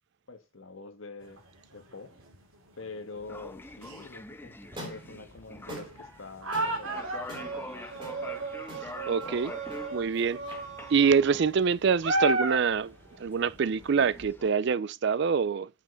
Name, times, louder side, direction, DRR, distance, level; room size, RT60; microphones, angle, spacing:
voice 1, 0.3-1.4 1.7-2.1 2.8-8.1, left 3 dB, 70° left, 1.6 m, -45 dB
sound 1, 1.3-2.4 2.7-3.2 3.8-4.0 4.7-4.8 5.2-14.3, right 2 dB, 85° right, 2.3 m, -34 dB
sound 2, 3.2-14.5, left 2 dB, 10° left, 0.4 m, -46 dB
sound 3, 4.6-12.9, equal, 25° right, 2.8 m, -48 dB
voice 2, 9.1-9.5 9.9-10.4 10.9-12.9 13.2-15.7, right 6 dB, 55° right, 0.4 m, -25 dB
9.0 x 5.2 x 3.8 m
head